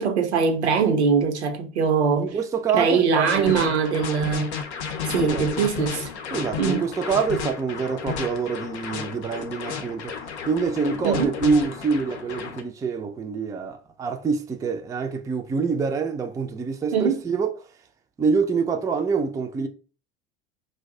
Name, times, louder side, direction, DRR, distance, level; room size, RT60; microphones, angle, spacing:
voice 1, 0.0-2.4 2.7-4.6 5.1-6.1 6.6-6.8 11.0-11.4 16.9-17.2, right 6 dB, 90° right, 0.7 m, -22 dB
voice 2, 2.2-3.6 5.2-5.7 6.3-10.1 10.5-17.5 18.2-19.7, right 5 dB, 10° right, 0.3 m, -26 dB
sound 1, 3.2-12.6, left 6 dB, 85° left, 0.6 m, -32 dB
2.5 x 2.1 x 3.6 m
hypercardioid pair, 80°, 33 cm